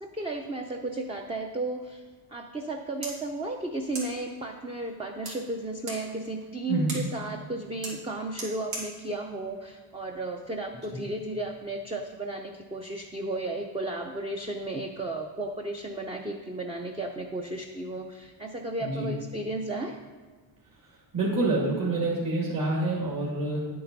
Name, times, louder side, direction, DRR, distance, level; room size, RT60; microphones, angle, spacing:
voice 1, 0.0-2.0 2.3-20.0, right 2 dB, 15° right, 2 dB, 0.4 m, -34 dB
sound 1, 3.0-10.6, right 2 dB, 80° right, 3.3 m, -44 dB
voice 2, 6.7-7.0 18.8-19.1 21.1-23.7, right 2 dB, 45° right, -5 dB, 2.6 m, -27 dB
10.5 x 8.7 x 4.0 m, 1.5 s
wide cardioid pair, 165°, 48 cm